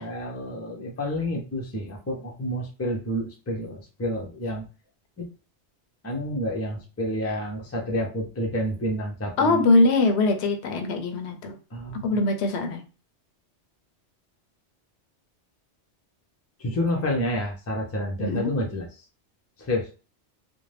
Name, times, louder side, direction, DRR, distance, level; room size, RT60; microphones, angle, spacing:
voice 1, 0.0-4.6 5.2-5.3 6.0-9.7 11.7-12.2 16.6-18.9 19.6-19.9, equal, 20° left, -1 dB, 0.4 m, -29 dB
voice 2, 9.4-11.6 12.0-12.8 18.2-18.5, left 2 dB, 75° left, 6 dB, 0.8 m, -22 dB
2.6 x 2.1 x 3.2 m, 0.35 s
omnidirectional pair, 1.1 m